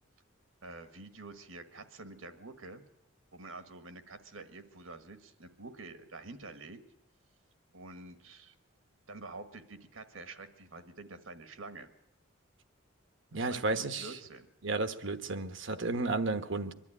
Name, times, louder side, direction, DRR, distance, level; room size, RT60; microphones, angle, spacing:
voice 1, 0.6-2.8 3.3-6.8 7.7-8.5 9.1-11.9 13.3-14.5, right 3 dB, 75° right, 9 dB, 1.6 m, -48 dB
voice 2, 13.3-14.1 14.6-16.7, right 3 dB, 60° right, 10 dB, 1.1 m, -32 dB
23.0 x 12.0 x 9.9 m, 0.88 s
head